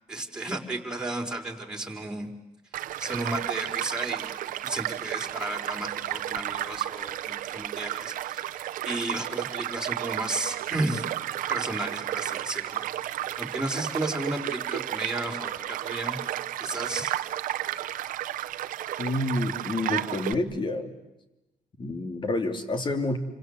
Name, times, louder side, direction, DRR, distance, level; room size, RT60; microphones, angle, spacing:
voice 1, 0.1-2.3 3.0-8.6 8.8-11.1 11.5-12.8 13.4-16.2 16.6-17.1, right 2 dB, 5° right, 0 dB, 4.4 m, -33 dB
Child speech kid speaking / Stream / Car passing by, 2.7-20.3, right 13 dB, 85° right, 0.9 m, -32 dB
voice 2, 19.0-20.9 21.8-23.2, left 2 dB, 35° left, 7 dB, 3.0 m, -28 dB
29.5 x 25.5 x 8.0 m, 0.98 s
cardioid pair, 120°, 14 cm